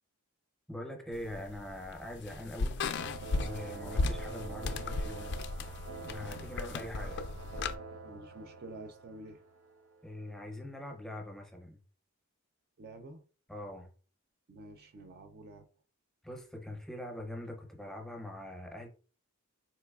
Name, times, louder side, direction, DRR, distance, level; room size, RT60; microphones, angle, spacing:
voice 1, 0.7-2.8 3.4-5.4 6.0-7.2 10.0-11.8 13.5-13.9 16.2-18.9, left 1 dB, ahead, 0.6 m, -43 dB
sound 1, 1.1-7.8, left 3 dB, 50° left, 0.3 m, -36 dB
sound 2, 3.0-10.2, right 3 dB, 90° right, 0.6 m, -45 dB
voice 2, 8.0-9.4 12.8-13.2 14.5-15.7, right 2 dB, 45° right, 0.3 m, -49 dB
3.9 x 2.9 x 2.3 m
head